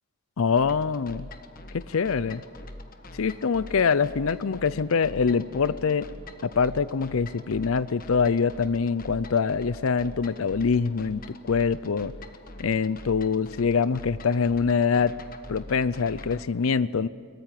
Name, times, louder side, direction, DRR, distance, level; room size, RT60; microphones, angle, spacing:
voice 1, 0.4-1.3 1.7-2.4 3.1-6.1 6.4-12.1 12.6-15.1 15.5-17.1, left 5 dB, 75° left, 17 dB, 0.5 m, -24 dB
sound 1, 0.6-16.4, left 1 dB, 40° left, 1.4 m, -44 dB
22.5 x 20.0 x 9.2 m, 2.2 s
head